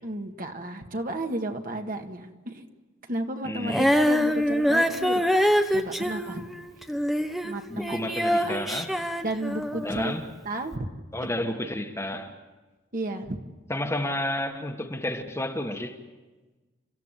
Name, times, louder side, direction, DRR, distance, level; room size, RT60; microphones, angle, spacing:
voice 1, 0.0-2.6 3.1-5.2 5.7-6.4 7.4-7.9 8.4-8.6 9.2-10.1 10.4-10.9 11.5-11.7 12.9-13.4, right 1 dB, 45° right, 4 dB, 1.9 m, -33 dB
voice 2, 3.4-3.9 7.7-8.9 9.7-10.2 11.1-12.3 13.7-16.0, left 1 dB, 15° left, 4 dB, 1.5 m, -31 dB
Female singing, 3.7-10.0 10.7-10.8, equal, ahead, 1.1 m, -25 dB
30.0 x 15.5 x 9.2 m, 1.3 s
head